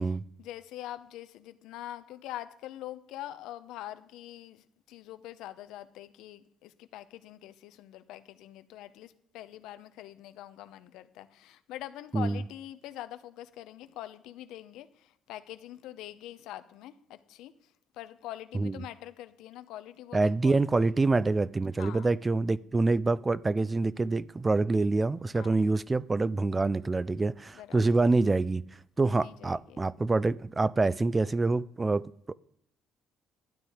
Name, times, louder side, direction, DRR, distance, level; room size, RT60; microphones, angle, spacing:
voice 1, 0.0-20.6 21.8-22.1 25.3-25.7 27.5-27.9 29.2-29.8, left 13 dB, 90° left, 0.8 m, -44 dB
voice 2, 20.1-28.6 29.0-32.3, right 3 dB, 20° right, 0.3 m, -26 dB
12.5 x 9.8 x 5.0 m
cardioid pair, 130°, 0 cm